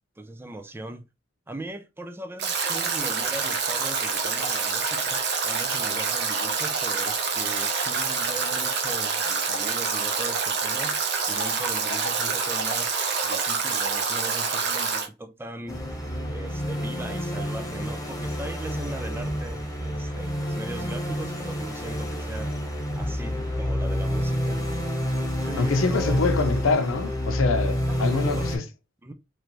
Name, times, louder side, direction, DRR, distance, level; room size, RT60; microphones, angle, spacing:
voice 1, 0.2-1.0 1.5-11.0 11.3-15.8 16.3-22.5 23.0-24.6 25.5-26.3 27.9-28.7 29.0-29.1, right 2 dB, 10° right, 0.3 m, -39 dB
Stream / Drip / Trickle dribble, 2.4-15.1, right 5 dB, 55° right, 0.7 m, -26 dB
sound 1, 15.7-28.6, equal, 20° left, 0.8 m, -29 dB
voice 2, 25.6-28.6, left 3 dB, 90° left, 0.6 m, -24 dB
3.1 x 2.6 x 3.0 m
head